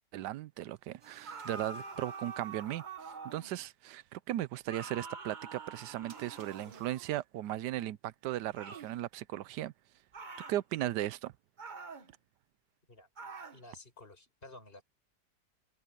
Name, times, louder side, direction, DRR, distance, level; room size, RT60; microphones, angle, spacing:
voice 1, 0.1-2.8 3.2-9.7 10.5-11.3, right 14 dB, 90° right, 1.2 m, -37 dB
sound 1, 1.0-3.5 6.1-7.2, right 6 dB, 50° right, 1.8 m, -59 dB
sound 2, 1.2-3.6 4.7-6.9 8.5-8.9 10.1-10.6 11.6-12.1 13.2-13.6, right 4 dB, 30° right, 1.1 m, -46 dB
voice 2, 13.5-14.8, left 2 dB, 30° left, 5.8 m, -52 dB
omnidirectional pair, 1.8 m